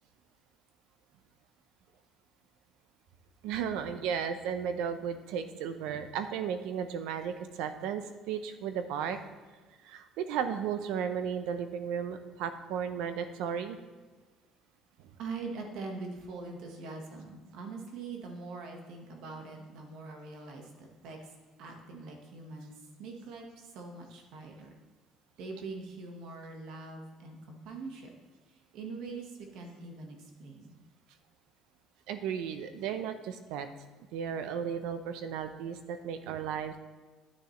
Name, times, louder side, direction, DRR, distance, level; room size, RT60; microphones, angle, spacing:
voice 1, 3.4-9.2 9.8-13.8 32.1-33.7 34.1-36.8, right 7 dB, 85° right, 9 dB, 0.8 m, -34 dB
voice 2, 15.2-21.3 21.6-22.7 23.0-24.7 25.4-28.1 28.5-30.8, right 3 dB, 70° right, 2 dB, 1.5 m, -43 dB
10.5 x 9.7 x 3.3 m, 1.4 s
cardioid pair, 155°, 0 cm